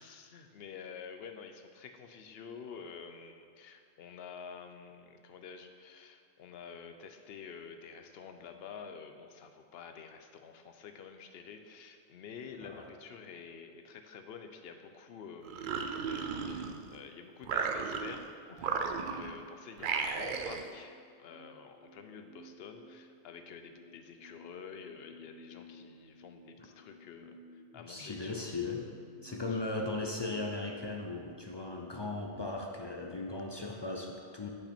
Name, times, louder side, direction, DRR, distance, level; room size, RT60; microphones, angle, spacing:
voice 1, 0.0-28.6 29.5-29.6, left 6 dB, 70° left, 6 dB, 0.8 m, -49 dB
sound 1, 15.4-17.0 17.4-18.3 18.6-19.4 19.8-20.7, right 5 dB, 60° right, 0.6 m, -35 dB
sound 2, 18.5-32.4, equal, 90° left, 1.7 m, -56 dB
voice 2, 27.9-28.9 29.2-34.5, left 3 dB, 40° left, 1 dB, 0.4 m, -37 dB
8.4 x 5.5 x 4.3 m, 2.1 s
omnidirectional pair, 1.1 m